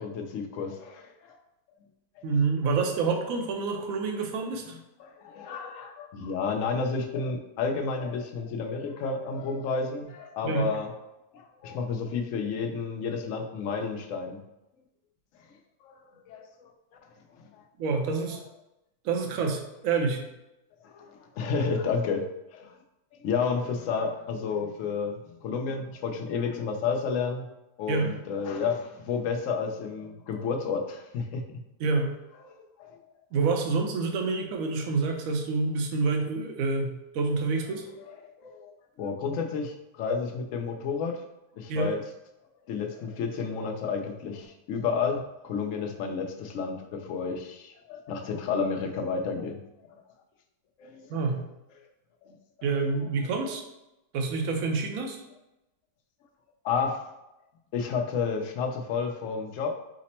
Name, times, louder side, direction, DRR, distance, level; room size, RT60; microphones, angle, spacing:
voice 1, 0.0-1.4 2.2-2.3 5.0-10.9 11.3-14.4 15.8-16.0 16.3-16.5 17.4-17.5 18.3-18.4 20.8-22.3 22.5-22.8 23.1-27.5 27.8-31.4 32.5-33.0 38.1-41.2 41.6-42.0 42.7-49.6 49.9-50.0 50.8-51.4 52.2-52.3 56.6-57.0 57.7-59.7, left 5 dB, 65° left, 2 dB, 0.9 m, -31 dB
voice 2, 2.2-4.8 10.4-10.7 17.8-18.4 19.0-20.2 27.9-28.1 31.8-32.1 33.3-37.9 41.7-41.9 51.1-51.4 52.6-53.6 54.1-55.2, right 4 dB, 70° right, 3 dB, 1.0 m, -27 dB
5.0 x 2.0 x 4.2 m, 0.93 s
omnidirectional pair, 1.6 m